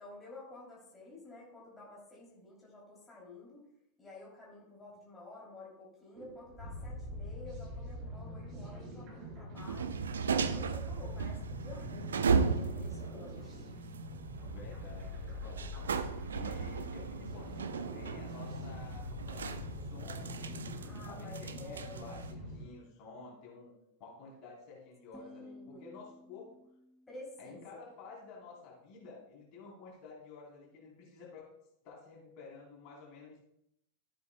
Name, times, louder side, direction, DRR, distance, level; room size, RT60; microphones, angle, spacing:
voice 1, 0.0-3.6 4.0-9.9 10.3-13.6 20.7-22.2 25.1-25.9 27.1-27.6, left 2 dB, 15° left, -5 dB, 3.0 m, -51 dB
sound 1, 6.1-22.6, left 1 dB, 35° right, 3.4 m, -44 dB
sound 2, 9.6-22.3, right 5 dB, 70° right, 0.5 m, -36 dB
voice 2, 14.4-15.7 16.4-20.5 21.1-23.7 24.0-26.5 27.4-31.5 31.8-33.4, left 4 dB, 40° left, -3 dB, 3.7 m, -51 dB
sound 3, 25.1-28.1, left 2 dB, 5° right, 1.0 m, -56 dB
14.0 x 8.0 x 2.2 m, 0.77 s
figure-of-eight pair, 90°, 0 cm